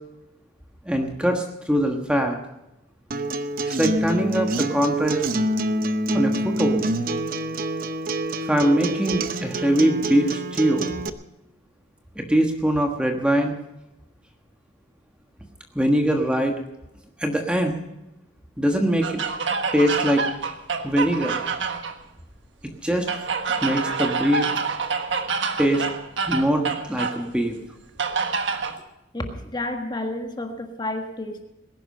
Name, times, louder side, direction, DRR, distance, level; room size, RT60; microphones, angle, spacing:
voice 1, 0.8-2.4 3.6-5.2 6.1-6.9 8.5-10.9 12.1-13.6 15.7-16.6 17.2-17.8 18.6-19.2 19.7-20.2 20.8-21.4 22.6-23.1 23.6-24.5 25.6-25.8 26.3-27.6, equal, 5° right, 3 dB, 1.4 m, -22 dB
Acoustic guitar, 3.1-11.1, right 1 dB, 50° right, 0.8 m, -26 dB
sound 1, 19.0-22.0 23.1-27.2 28.0-28.8, right 5 dB, 75° right, 1.4 m, -27 dB
voice 2, 29.1-31.4, left 1 dB, 25° left, 4 dB, 1.6 m, -30 dB
19.5 x 11.0 x 5.3 m, 0.93 s
head